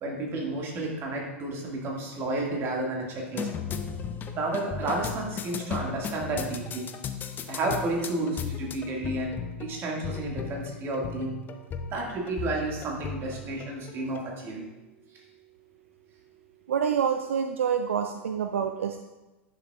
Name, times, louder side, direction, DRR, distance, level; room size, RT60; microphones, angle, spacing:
voice 1, 0.0-3.5 4.3-6.8 7.5-11.4 11.9-14.6, right 2 dB, 35° right, -1 dB, 1.8 m, -31 dB
sound 1, 3.3-14.3, left 6 dB, 25° left, 0.5 m, -36 dB
voice 2, 16.7-19.0, right 7 dB, 70° right, 6 dB, 0.4 m, -27 dB
10.0 x 6.0 x 2.3 m, 1.1 s
figure-of-eight pair, 90°, 7 cm